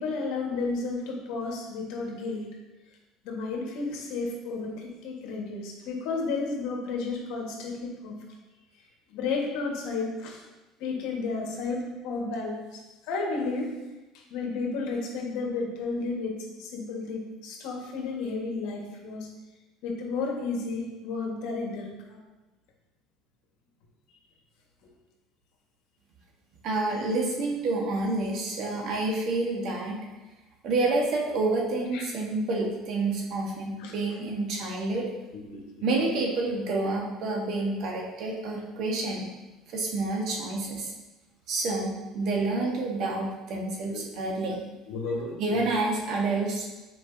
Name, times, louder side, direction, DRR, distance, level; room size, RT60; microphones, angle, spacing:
voice 1, 0.0-2.5 3.2-8.2 9.1-10.4 10.8-12.8 13.1-13.7 14.3-19.3 19.8-22.2 31.9-32.1 33.8-33.9 35.3-35.9 43.9-44.1 44.9-45.6, left 3 dB, 75° left, 0 dB, 1.3 m, -32 dB
voice 2, 26.6-30.0 30.6-35.1 35.8-39.3 39.7-40.9 41.5-44.6 45.4-46.7, right 2 dB, 55° right, 0 dB, 1.3 m, -28 dB
7.7 x 4.6 x 2.6 m, 1.1 s
cardioid pair, 125°, 0 cm